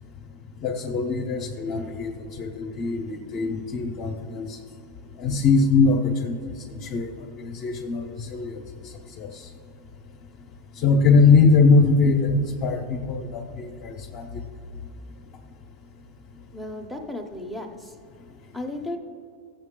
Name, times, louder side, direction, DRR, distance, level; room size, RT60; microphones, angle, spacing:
voice 1, 0.5-9.6 10.7-14.9 15.3-15.4 16.3-16.4 18.2-18.5, left 4 dB, 35° left, 3 dB, 0.7 m, -23 dB
voice 2, 16.5-18.0 18.5-19.0, left 1 dB, ahead, 5 dB, 0.6 m, -34 dB
15.0 x 7.1 x 3.7 m, 2.6 s
supercardioid pair, 170°, 0 cm